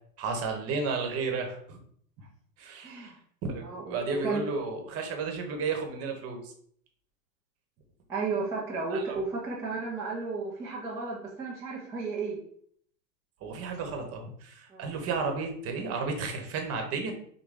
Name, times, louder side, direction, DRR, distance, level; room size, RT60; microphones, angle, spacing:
voice 1, 0.2-1.8 2.6-3.1 3.4-6.5 8.9-9.2 13.4-17.1, right 4 dB, 30° right, 4 dB, 1.0 m, -33 dB
voice 2, 2.8-3.2 3.6-4.4 8.1-12.4 14.7-14.9, right 4 dB, 5° right, -7 dB, 0.4 m, -33 dB
6.3 x 2.2 x 3.4 m, 0.63 s
hypercardioid pair, 120°, 49 cm